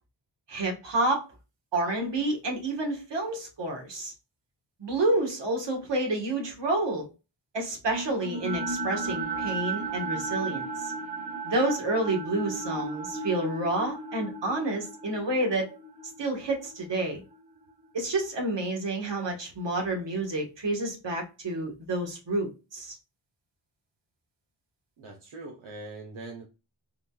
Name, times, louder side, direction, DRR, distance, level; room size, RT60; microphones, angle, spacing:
voice 1, 0.5-1.2 1.7-4.1 4.8-7.1 7.5-10.9 11.4-15.7 16.2-17.2 17.9-22.9, right 2 dB, 65° right, 1.4 m, -29 dB
sound 1, 7.9-18.1, right 3 dB, 15° right, 1.0 m, -35 dB
voice 2, 25.0-26.5, right 2 dB, 85° right, 0.8 m, -42 dB
3.6 x 2.2 x 2.3 m
wide cardioid pair, 105°, 46 cm